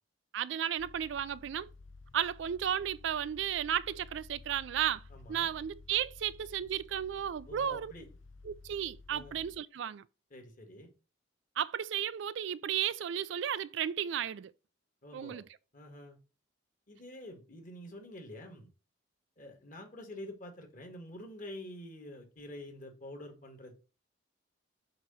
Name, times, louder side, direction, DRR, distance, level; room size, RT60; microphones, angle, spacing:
voice 1, 0.3-1.7 2.1-5.0 5.3-7.9 8.5-10.0 11.6-14.5 15.1-15.4, right 9 dB, 65° right, 0.3 m, -34 dB
sound 1, 0.8-9.6, left 3 dB, 75° left, 0.6 m, -54 dB
voice 2, 5.1-5.5 7.5-8.1 9.1-9.4 10.3-10.9 15.0-15.4 15.7-16.2 16.9-18.7 19.4-23.7, left 1 dB, 40° left, 1.7 m, -47 dB
7.7 x 2.9 x 5.5 m
head